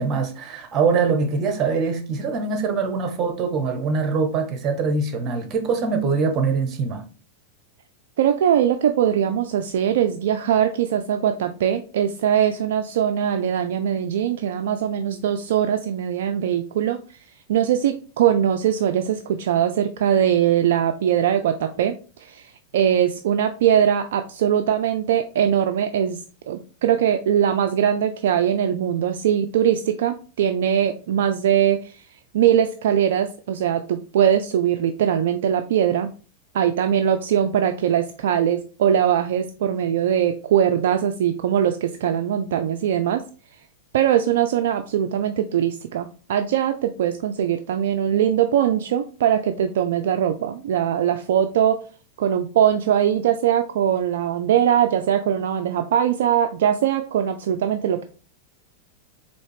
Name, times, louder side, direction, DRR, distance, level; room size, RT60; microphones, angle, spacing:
voice 1, 0.0-7.0, right 5 dB, 35° right, 1.0 m, -23 dB
voice 2, 8.2-17.0 17.5-26.2 26.5-32.0 32.3-36.1 36.5-43.2 43.9-51.8 52.2-58.0, right 9 dB, 65° right, 0.3 m, -21 dB
4.1 x 2.8 x 3.2 m
figure-of-eight pair, 95°, 0 cm